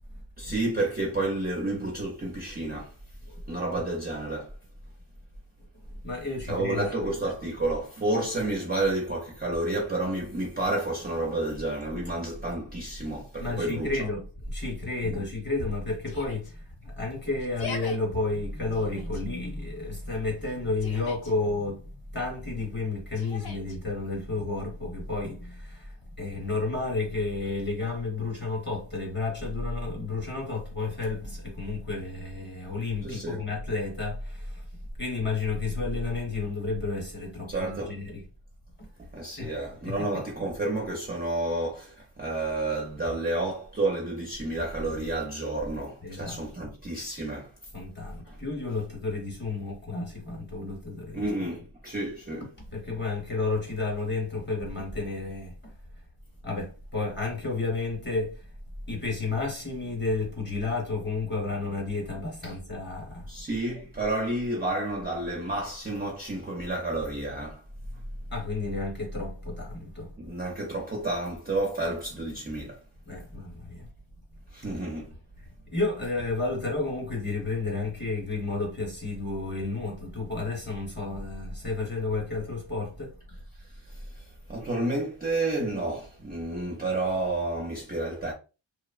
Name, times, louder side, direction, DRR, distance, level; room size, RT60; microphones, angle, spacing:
voice 1, 0.4-3.0 3.5-4.5 6.5-13.9 15.0-15.2 33.0-33.5 37.5-37.9 39.0-47.5 48.2-48.4 51.1-52.5 62.4-62.5 63.3-67.6 70.2-72.8 74.5-75.1 83.6-88.3, right 2 dB, 20° right, 0.4 m, -30 dB
voice 2, 3.3-3.8 6.0-6.9 13.4-34.7 35.0-38.2 38.8-38.9 39.4-40.1 46.0-46.4 47.7-51.3 52.7-55.7 56.4-58.5 58.9-63.4 68.3-70.3 73.0-73.9 75.4-83.2, left 3 dB, 20° left, 0.8 m, -31 dB
Yell, 16.0-16.5 17.4-18.0 18.7-19.2 20.4-21.3 23.1-23.8, left 4 dB, 50° left, 0.6 m, -40 dB
2.8 x 2.0 x 2.3 m
wide cardioid pair, 175°, 49 cm